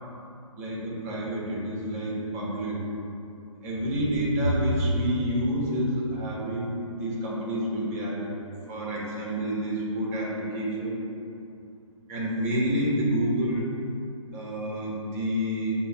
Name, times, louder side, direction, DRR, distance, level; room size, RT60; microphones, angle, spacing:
voice 1, 0.6-2.9 3.6-8.3 8.7-11.0 12.1-13.7 14.3-15.7, equal, 25° right, -4 dB, 1.0 m, -28 dB
5.5 x 2.2 x 4.1 m, 2.7 s
figure-of-eight pair, 140°, 18 cm